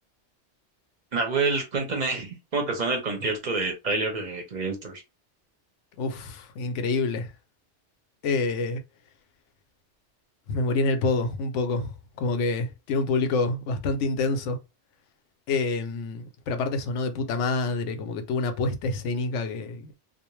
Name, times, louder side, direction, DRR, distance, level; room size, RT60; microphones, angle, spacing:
voice 1, 1.1-5.0, right 3 dB, 45° right, 0.7 m, -27 dB
voice 2, 6.0-7.3 8.2-8.8 10.5-14.6 15.5-19.9, left 3 dB, 90° left, 0.9 m, -27 dB
2.5 x 2.0 x 3.0 m
omnidirectional pair, 1.2 m